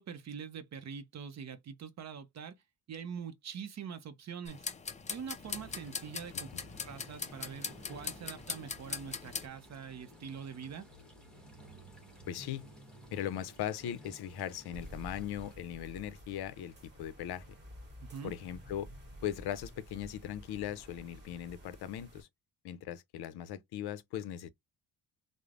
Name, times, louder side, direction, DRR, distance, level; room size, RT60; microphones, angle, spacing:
voice 1, 0.0-2.5 2.9-4.7 5.1-6.5 6.8-10.9 18.0-18.3, right 7 dB, 45° right, 0.6 m, -44 dB
sound 1, 4.5-9.5, left 5 dB, 20° left, 0.3 m, -41 dB
sound 2, 5.4-15.6, equal, ahead, 0.9 m, -55 dB
voice 2, 12.3-12.6 13.1-17.5 18.2-18.9 19.2-22.3 22.6-24.5, left 10 dB, 70° left, 0.5 m, -39 dB
sound 3, 14.7-22.2, equal, 25° right, 1.2 m, -51 dB
3.1 x 2.0 x 2.4 m
cardioid pair, 120°, 40 cm